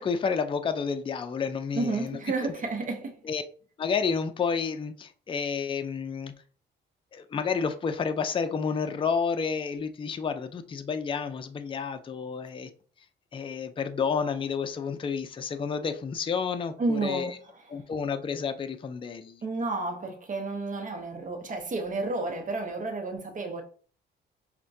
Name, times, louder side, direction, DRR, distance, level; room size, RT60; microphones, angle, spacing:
voice 1, 0.0-2.2 3.2-3.4 3.8-6.3 7.1-12.7 13.3-17.4 17.7-19.4, left 6 dB, 25° left, 0.4 m, -30 dB
voice 2, 1.7-3.2 16.8-17.4 19.4-23.6, right 3 dB, 40° right, 0.7 m, -31 dB
5.5 x 2.1 x 2.6 m
cardioid pair, 90°, 20 cm